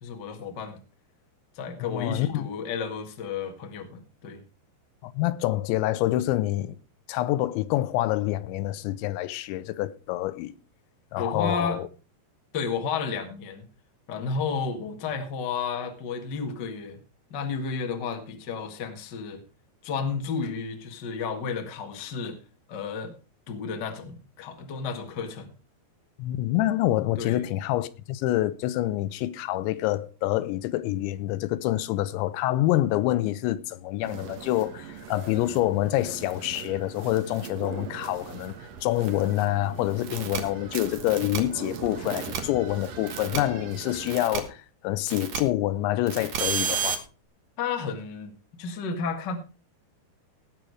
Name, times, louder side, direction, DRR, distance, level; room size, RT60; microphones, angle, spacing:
voice 1, 0.0-0.8 1.5-4.4 11.2-11.8 12.5-13.7 14.1-17.0 17.3-19.4 19.8-22.4 22.7-23.1 23.5-25.5 27.2-27.4 47.6-49.3, left 5 dB, 65° left, 1.0 m, -32 dB
voice 2, 1.8-2.5 5.0-6.8 7.1-10.6 11.1-11.9 26.2-38.5 38.8-47.0, left 15 dB, 90° left, 3.1 m, -27 dB
sound 1, 34.0-44.2, right 7 dB, 90° right, 1.4 m, -40 dB
sound 2, 40.1-40.4 41.1-41.4 42.1-42.4 43.1-43.4 44.1-44.4 45.1-45.4 46.1-47.0, right 7 dB, 60° right, 1.9 m, -30 dB
18.0 x 6.4 x 4.9 m
omnidirectional pair, 5.1 m